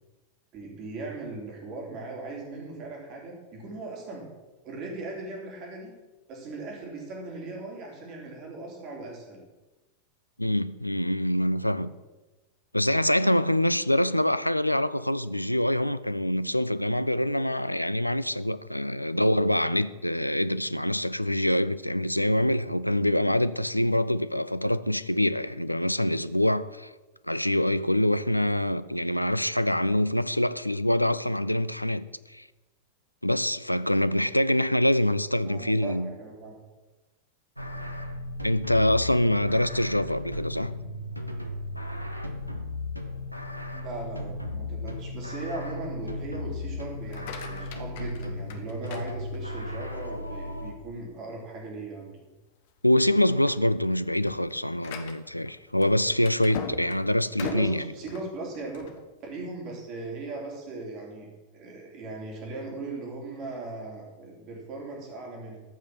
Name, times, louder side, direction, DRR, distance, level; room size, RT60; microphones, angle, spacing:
voice 1, 0.5-4.3 4.6-5.9 6.3-9.4 19.0-19.1 35.4-36.6 43.7-52.1 57.4-58.8 59.2-65.6, right 2 dB, 40° right, 3.5 m, -38 dB
voice 2, 10.4-11.9 12.7-26.9 27.3-32.0 32.3-32.5 33.2-36.1 38.4-40.7 52.8-57.8, left 1 dB, 90° left, 0.4 m, -25 dB
sound 1, 37.6-50.7, left 1 dB, 90° right, 0.9 m, -35 dB
sound 2, 46.9-49.8 50.3-50.7 51.2-51.3 51.7-51.9 52.5-52.8 53.1-59.0, left 7 dB, 50° left, 1.1 m, -41 dB
13.5 x 5.7 x 6.2 m
figure-of-eight pair, 90°, 0 cm